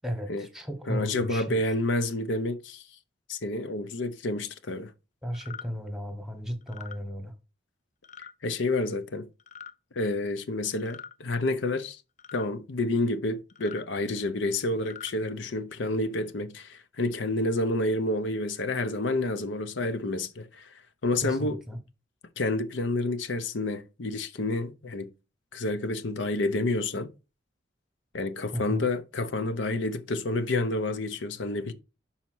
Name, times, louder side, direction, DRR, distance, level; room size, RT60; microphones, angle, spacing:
voice 1, 0.0-1.5 5.2-7.3 21.2-21.8 28.5-28.9, equal, ahead, 1.1 m, -34 dB
voice 2, 0.9-2.8 3.3-4.9 8.2-9.3 9.9-12.0 12.3-20.7 21.0-21.6 22.4-25.1 25.5-27.1 28.1-31.7, left 2 dB, 80° left, 0.7 m, -29 dB
sound 1, 5.3-5.7 6.6-7.0 8.0-8.3 9.4-9.7 10.8-11.2 12.2-12.5 13.5-13.8 14.7-15.1, left 7 dB, 40° left, 0.4 m, -44 dB
5.7 x 4.2 x 6.1 m
head